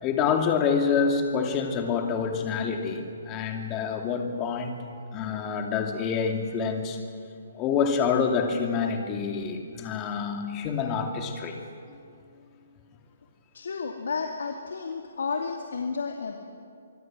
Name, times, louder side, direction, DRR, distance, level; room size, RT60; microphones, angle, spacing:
voice 1, 0.0-4.8 5.1-7.0 7.5-11.6, left 6 dB, 20° left, 4 dB, 2.5 m, -27 dB
voice 2, 13.5-16.3, left 5 dB, 75° left, 2 dB, 2.4 m, -32 dB
24.5 x 24.5 x 7.6 m, 2.3 s
hypercardioid pair, 165°, 0 cm